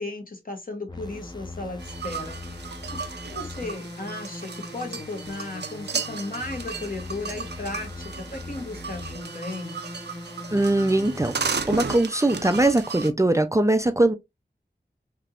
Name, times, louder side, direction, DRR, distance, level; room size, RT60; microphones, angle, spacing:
voice 1, 0.0-9.8, left 2 dB, 55° left, 1.2 m, -36 dB
sound 1, 0.9-12.0, left 2 dB, 25° left, 0.7 m, -40 dB
sound 2, 1.8-13.1, right 5 dB, 75° right, 0.5 m, -35 dB
voice 2, 10.5-14.2, right 1 dB, 15° right, 0.4 m, -21 dB
3.4 x 2.8 x 2.4 m
wide cardioid pair, 50°, 18 cm